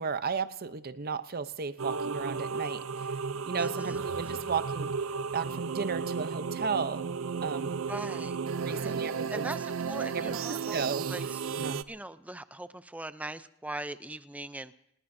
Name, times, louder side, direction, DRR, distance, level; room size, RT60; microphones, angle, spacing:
voice 1, 0.0-2.8 3.5-4.9 5.3-7.1 7.4-7.7 8.6-9.5 10.1-11.1 11.6-11.8, right 5 dB, 50° right, 12 dB, 0.7 m, -34 dB
sound 1, 1.8-11.8, right 5 dB, 85° right, 0.5 m, -34 dB
voice 2, 3.6-4.3 7.9-9.0 9.3-14.7, right 1 dB, 5° right, 12 dB, 0.5 m, -41 dB
28.0 x 19.5 x 2.7 m, 0.81 s
head